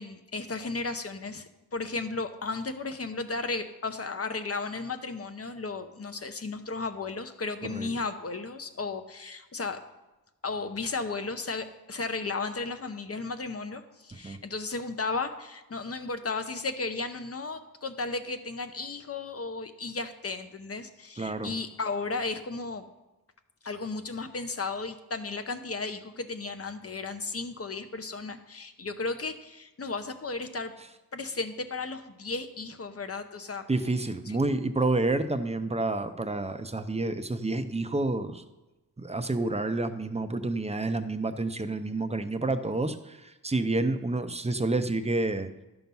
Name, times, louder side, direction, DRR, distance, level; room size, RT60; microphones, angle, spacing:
voice 1, 0.0-9.8 10.4-22.9 23.6-30.7 31.1-33.6 34.3-34.4, left 3 dB, 35° left, 9 dB, 0.8 m, -34 dB
voice 2, 21.2-21.5 33.7-38.4 39.0-45.5, right 2 dB, 15° right, 9 dB, 0.6 m, -29 dB
11.5 x 5.9 x 5.4 m, 1.0 s
wide cardioid pair, 120°, 39 cm